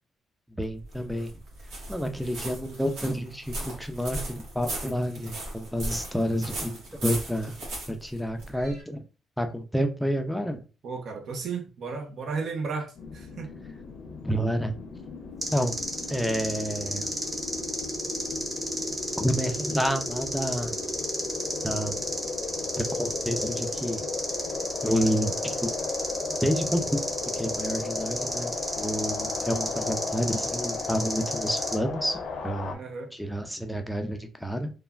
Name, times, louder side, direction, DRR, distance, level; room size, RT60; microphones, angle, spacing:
voice 1, 0.6-1.3 1.9-7.5 7.9-9.0 9.4-10.6 14.2-14.7 15.5-17.1 19.2-20.8 21.6-22.0 22.8-24.0 24.8-25.7 26.4-27.0 27.3-32.2 32.4-32.8 33.1-34.7, equal, ahead, 0.4 m, -29 dB
sound 1, 0.6-8.8, right 1 dB, 85° right, 1.1 m, -37 dB
voice 2, 10.8-13.5 32.7-33.1, right 4 dB, 65° right, 0.7 m, -34 dB
sound 2, 12.9-32.7, left 4 dB, 70° left, 0.6 m, -35 dB
sound 3, 15.4-31.8, equal, 25° right, 1.0 m, -33 dB
3.2 x 2.2 x 2.3 m
cardioid pair, 90°, 0 cm